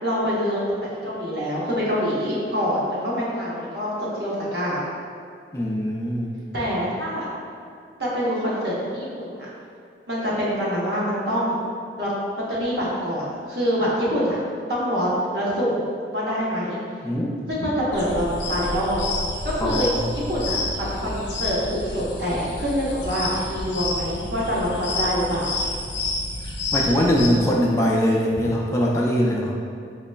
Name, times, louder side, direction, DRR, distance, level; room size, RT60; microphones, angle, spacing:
voice 1, 0.0-4.8 6.5-7.3 8.0-9.5 10.1-11.6 12.0-12.1 12.5-14.4 14.7-15.8 16.1-16.8 17.5-19.0 19.4-25.5, equal, 65° right, -7 dB, 0.9 m, -25 dB
voice 2, 5.5-6.3 17.0-17.4 19.6-20.1 26.7-29.5, equal, 15° left, -3 dB, 0.3 m, -22 dB
sound 1, 17.9-27.3, left 2 dB, 75° left, 0.7 m, -29 dB
3.9 x 3.1 x 2.2 m, 2.3 s
head